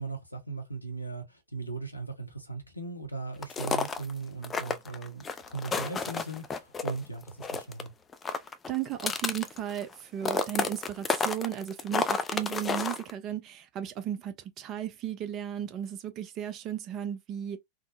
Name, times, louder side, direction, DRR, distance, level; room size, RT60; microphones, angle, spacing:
voice 1, 0.0-7.9, right 3 dB, 85° left, 0.8 m, -38 dB
sound 1, 3.4-4.1 4.4-7.0 7.2-7.9 8.1-9.9 10.2-13.1, left 5 dB, 20° left, 0.4 m, -31 dB
voice 2, 8.7-17.6, right 10 dB, 35° right, 0.6 m, -35 dB
3.5 x 2.0 x 2.5 m
figure-of-eight pair, 90°, 0 cm